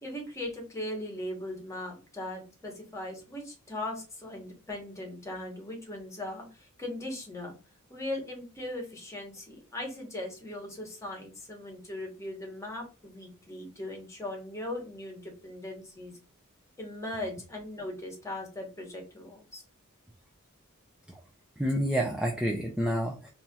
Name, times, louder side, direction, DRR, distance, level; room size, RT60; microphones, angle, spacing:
voice 1, 0.0-7.5 7.9-16.2 16.8-19.6, left 1 dB, 15° left, 1 dB, 1.1 m, -39 dB
voice 2, 21.6-23.3, equal, 5° right, 1 dB, 0.4 m, -29 dB
4.2 x 2.7 x 2.3 m, 0.33 s
head